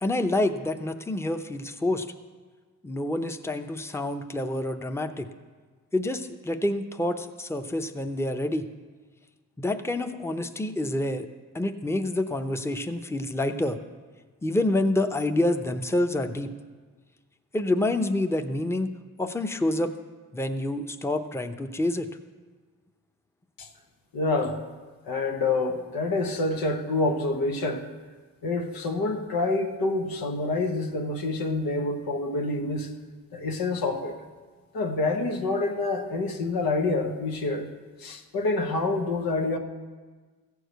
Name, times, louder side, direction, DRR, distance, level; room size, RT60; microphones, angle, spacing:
voice 1, 0.0-2.1 2.8-5.3 5.9-8.7 9.6-11.3 11.5-13.8 14.4-16.5 17.5-18.9 19.2-19.9 20.3-22.1, left 1 dB, 10° left, 7 dB, 0.7 m, -27 dB
voice 2, 24.1-24.6 25.1-27.9 28.4-32.9 33.3-34.2 34.7-37.7 38.0-39.6, left 2 dB, 90° left, 3 dB, 1.1 m, -27 dB
14.5 x 4.8 x 8.0 m, 1.4 s
cardioid pair, 55°, 34 cm